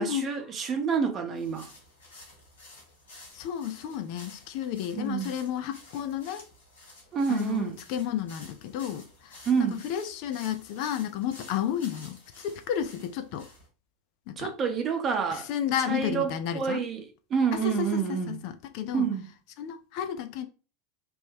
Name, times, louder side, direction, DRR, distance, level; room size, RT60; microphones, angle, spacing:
voice 1, 0.0-1.7 5.0-5.3 7.1-7.8 9.5-9.8 14.4-15.5 15.9-18.4 18.9-19.3, right 6 dB, 35° right, 0.7 m, -28 dB
sound 1, 1.4-13.7, left 2 dB, 80° left, 1.6 m, -51 dB
voice 2, 3.3-6.4 7.3-13.5 14.3-14.5 15.3-16.8 17.5-19.1 19.6-20.5, left 9 dB, 55° left, 0.4 m, -32 dB
3.0 x 2.2 x 3.3 m
hypercardioid pair, 85°, 0 cm